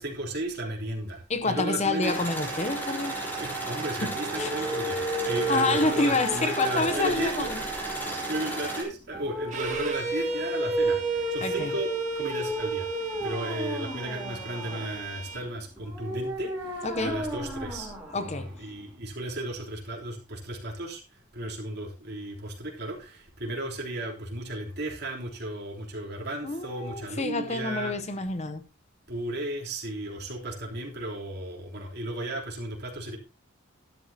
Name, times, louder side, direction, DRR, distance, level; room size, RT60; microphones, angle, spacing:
voice 1, 0.0-2.1 3.0-7.5 7.9-27.9 29.1-33.2, right 1 dB, 50° right, 3.3 m, -35 dB
voice 2, 1.3-3.2 4.4-4.7 5.5-7.6 11.4-11.7 16.8-17.2 18.1-18.5 26.4-28.6, left 3 dB, 35° left, 0.7 m, -28 dB
sound 1, 2.0-8.8, right 2 dB, 10° left, 3.6 m, -33 dB
sound 2, 4.0-19.0, right 2 dB, 5° right, 3.7 m, -33 dB
Bowed string instrument, 9.5-15.5, right 3 dB, 35° right, 2.1 m, -40 dB
12.5 x 11.5 x 2.8 m
head